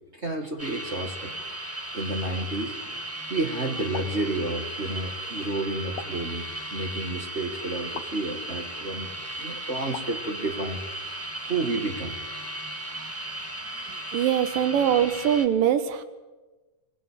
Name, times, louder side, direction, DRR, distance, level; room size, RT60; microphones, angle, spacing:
voice 1, 0.1-1.3 1.9-2.7 3.3-9.1 9.4-10.8 11.4-12.2, right 2 dB, 35° right, 4 dB, 1.1 m, -30 dB
sound 1, 0.6-15.5, right 1 dB, 5° right, 1.0 m, -36 dB
sound 2, 3.9-4.2 6.0-6.3 7.9-8.2 9.9-10.2, left 8 dB, 65° left, 1.3 m, -39 dB
voice 2, 14.1-16.0, right 9 dB, 75° right, 10 dB, 3.0 m, -22 dB
21.5 x 20.5 x 8.4 m, 1.2 s
omnidirectional pair, 3.9 m